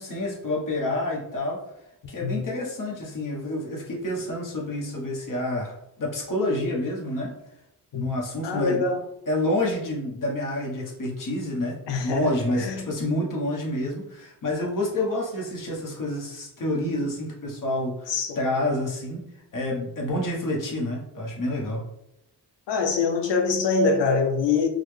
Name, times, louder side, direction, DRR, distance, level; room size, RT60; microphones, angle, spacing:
voice 1, 0.0-1.6 2.1-7.3 7.9-8.8 9.3-19.2 19.5-21.8, left 1 dB, 50° left, -2 dB, 1.0 m, -28 dB
voice 2, 8.4-9.0 11.9-12.3 12.6-12.9 18.1-18.4 22.7-24.7, left 4 dB, 85° left, 4 dB, 0.7 m, -24 dB
3.9 x 2.0 x 3.2 m, 0.83 s
wide cardioid pair, 145°, 41 cm